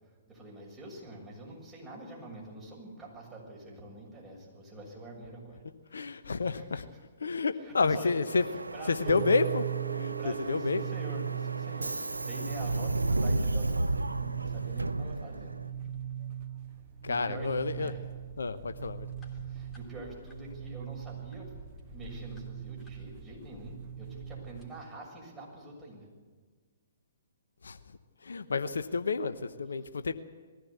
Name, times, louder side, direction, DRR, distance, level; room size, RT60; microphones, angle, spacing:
voice 1, 0.3-5.6 6.5-6.8 7.6-8.2 8.5-9.2 10.2-11.9 12.2-15.6 17.1-18.0 19.5-21.5 21.8-26.1, right 1 dB, 15° right, -2 dB, 6.9 m, -46 dB
voice 2, 5.9-6.9 7.2-8.4 8.9-9.7 9.9-10.8 17.0-17.9 18.4-19.1 27.6-27.8 28.2-30.1, left 4 dB, 70° left, 11 dB, 0.9 m, -30 dB
Subway metro underground, 8.3-15.7, right 2 dB, 85° right, 0.6 m, -33 dB
sound 1, 9.1-24.9, right 10 dB, 40° right, 1.2 m, -39 dB
sound 2, 15.3-24.7, equal, 15° left, 3.3 m, -51 dB
20.5 x 15.0 x 8.5 m, 1.5 s
figure-of-eight pair, 125°, 0 cm